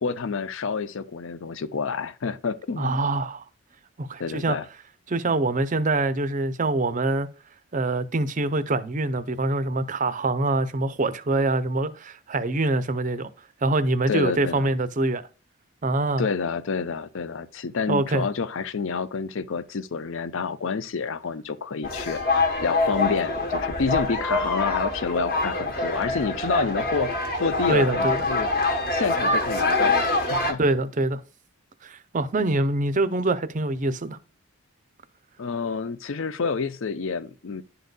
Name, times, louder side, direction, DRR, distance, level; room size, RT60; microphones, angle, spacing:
voice 1, 0.0-3.0 4.2-4.7 14.1-14.7 16.2-22.2 22.6-28.5 28.9-30.0 30.3-30.6 35.4-37.6, left 5 dB, 60° left, 0.5 m, -28 dB
voice 2, 2.8-3.4 4.0-4.6 5.1-7.3 7.7-13.3 13.6-15.2 15.8-16.3 17.9-18.3 27.7-28.2 30.6-31.2 31.8-34.2, right 2 dB, 35° right, 0.5 m, -24 dB
sound 1, 21.8-30.5, left 2 dB, 40° left, 1.2 m, -25 dB
11.0 x 3.9 x 2.2 m
head